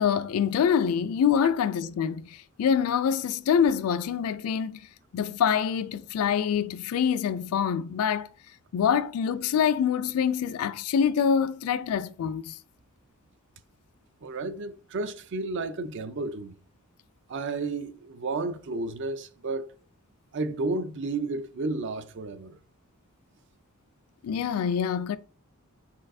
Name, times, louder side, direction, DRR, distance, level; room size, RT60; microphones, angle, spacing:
voice 1, 0.0-4.9 5.1-8.3 8.7-12.5 24.2-25.2, left 7 dB, 80° left, 0.3 m, -25 dB
voice 2, 14.2-16.5 17.3-19.7 20.3-22.6, right 3 dB, 55° right, 0.5 m, -32 dB
4.7 x 4.3 x 2.6 m
head